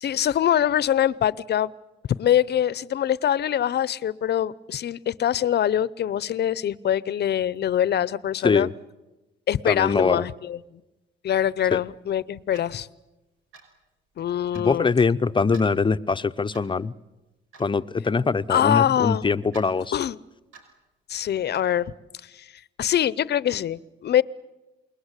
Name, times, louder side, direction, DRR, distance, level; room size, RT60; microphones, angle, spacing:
voice 1, 0.0-1.7 2.2-8.7 9.5-10.8 11.2-12.9 14.2-14.9 18.5-19.3 19.9-20.2 21.1-21.9 22.3-22.5 22.8-24.2, left 10 dB, 55° left, 0.8 m, -24 dB
voice 2, 9.6-10.3 11.7-11.8 14.5-16.9 17.6-19.9, left 4 dB, 25° left, 0.8 m, -23 dB
Clock, 12.5-12.7 13.5-13.8 14.5-14.7 15.5-15.7 16.5-16.8 17.5-17.7 18.5-18.7 19.5-19.7 20.5-20.7 21.5-21.7, right 5 dB, 85° right, 5.5 m, -48 dB
28.5 x 20.5 x 8.3 m
cardioid pair, 90°, 20 cm